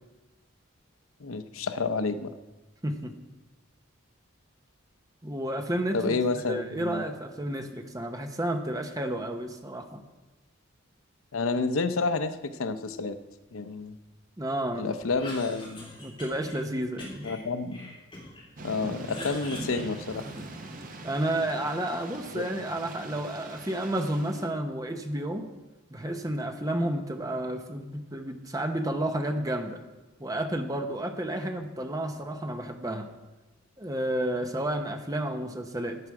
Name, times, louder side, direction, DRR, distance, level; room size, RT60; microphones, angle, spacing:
voice 1, 1.2-2.3 5.9-7.0 11.3-13.2 13.5-14.0 14.8-15.9 17.2-17.9 18.6-20.2 22.3-22.4, left 4 dB, 80° left, 10 dB, 0.7 m, -29 dB
voice 2, 5.2-6.2 6.5-10.0 14.4-14.9 16.0-17.3 21.0-25.5 25.9-29.8 30.2-33.1 33.8-36.0, right 1 dB, 15° right, 5 dB, 0.9 m, -31 dB
Cough, 15.0-16.6 17.0-18.5 18.8-20.7, left 1 dB, 25° left, 3.7 m, -43 dB
Thunder / Rain, 18.6-24.5, right 2 dB, 40° right, 1.1 m, -42 dB
13.5 x 9.0 x 4.8 m, 1.1 s
head